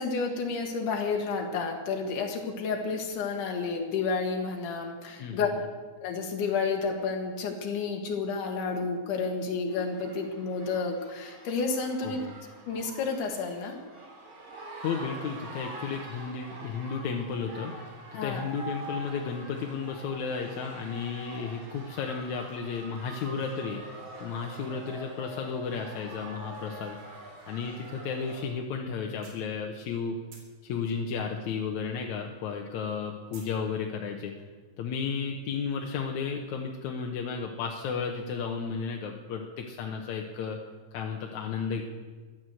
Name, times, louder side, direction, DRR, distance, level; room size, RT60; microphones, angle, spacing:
voice 1, 0.0-5.5 6.0-12.2 12.7-13.8 18.1-18.4, left 4 dB, 90° left, 2 dB, 3.0 m, -31 dB
sound 1, 9.7-28.5, right 2 dB, 40° right, 3.3 m, -45 dB
voice 2, 12.0-12.3 14.8-17.7 18.1-23.8 24.2-27.0 27.5-30.2 30.6-34.3 34.8-40.6 40.9-41.8, left 5 dB, 70° left, 1 dB, 2.3 m, -33 dB
sound 2, 29.2-30.0 30.3-32.2 32.4-33.6, right 4 dB, 80° right, 4.1 m, -53 dB
14.5 x 11.5 x 7.8 m, 1.4 s
omnidirectional pair, 3.5 m